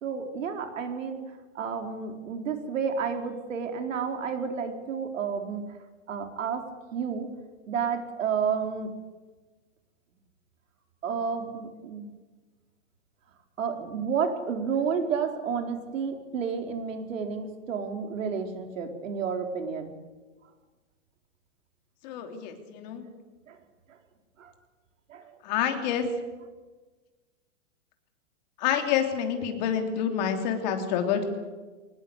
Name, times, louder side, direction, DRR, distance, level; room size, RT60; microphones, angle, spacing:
voice 1, 0.0-1.2 1.5-5.6 6.1-6.6 6.9-7.3 7.7-8.9 11.0-12.1 13.6-19.9 23.5-23.6 24.4-24.5 25.1-25.4, right 6 dB, 80° right, 5 dB, 4.4 m, -31 dB
voice 2, 22.0-23.1 25.4-26.0 28.6-31.2, left 8 dB, 35° left, 5 dB, 3.2 m, -28 dB
24.0 x 19.5 x 8.3 m, 1.3 s
supercardioid pair, 175°, 38 cm